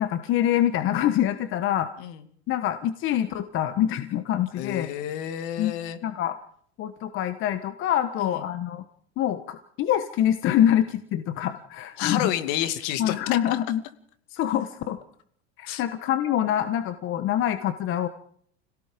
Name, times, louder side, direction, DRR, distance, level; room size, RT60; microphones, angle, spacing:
voice 1, 0.0-1.9 2.5-4.9 5.6-5.7 6.0-6.3 6.8-8.8 9.2-12.3 13.0-13.8 14.3-15.0 15.6-18.1, left 11 dB, 40° left, 10 dB, 1.4 m, -25 dB
voice 2, 4.6-6.0 8.2-8.4 12.0-13.2 15.7-15.8, left 11 dB, 60° left, 9 dB, 2.4 m, -30 dB
29.5 x 17.5 x 5.3 m, 0.64 s
supercardioid pair, 130°, 32 cm